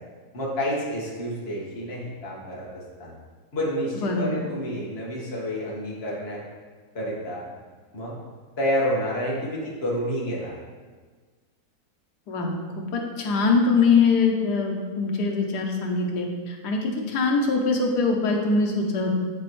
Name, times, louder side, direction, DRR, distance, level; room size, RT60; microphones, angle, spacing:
voice 1, 0.3-3.2 3.5-6.4 7.0-7.4 7.9-8.2 8.6-10.5, equal, 40° left, -5 dB, 1.7 m, -29 dB
voice 2, 3.9-4.4 12.3-19.1, left 4 dB, 90° left, 1 dB, 1.5 m, -23 dB
9.7 x 4.2 x 3.1 m, 1.5 s
omnidirectional pair, 1.7 m